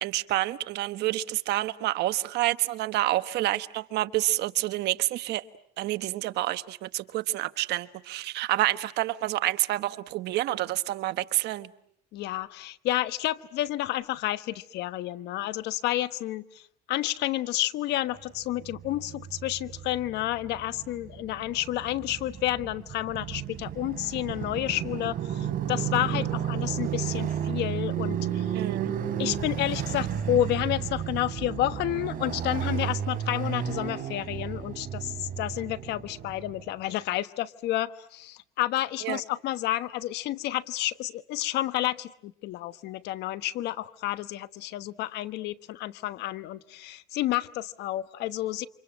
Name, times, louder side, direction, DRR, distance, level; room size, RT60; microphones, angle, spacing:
voice 1, 0.0-5.4 5.8-11.7 28.5-28.9 39.0-39.2, right 16 dB, 80° right, 1.2 m, -28 dB
voice 2, 12.1-28.6 29.2-48.7, left 15 dB, 85° left, 1.2 m, -30 dB
Motorcycle, 18.5-36.7, right 9 dB, 55° right, 3.5 m, -33 dB
29.0 x 26.5 x 7.6 m
cardioid pair, 110°, 17 cm